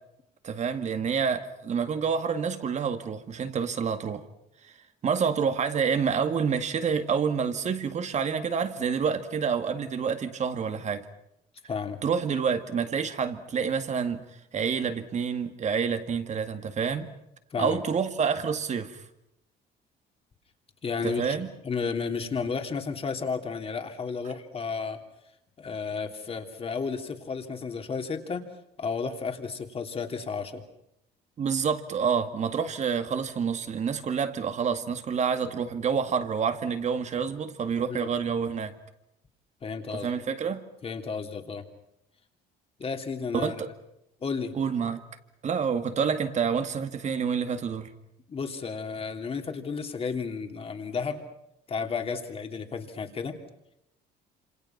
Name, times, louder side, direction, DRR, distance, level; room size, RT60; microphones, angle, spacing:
voice 1, 0.4-4.2 5.0-11.1 12.0-14.2 14.5-17.1 17.6-19.0 21.0-21.5 31.4-38.7 39.9-40.6 43.3-43.7 44.5-45.0 45.4-47.9, right 6 dB, 45° right, 2.1 m, -28 dB
voice 2, 11.7-12.0 17.5-17.8 20.8-21.4 21.6-25.0 25.6-28.4 28.8-30.6 37.9-38.1 39.6-40.1 40.8-41.6 42.8-43.6 44.2-44.5 48.3-51.2 51.7-53.4, left 5 dB, 35° left, 3.1 m, -32 dB
27.5 x 27.0 x 6.0 m
cardioid pair, 110°, 17 cm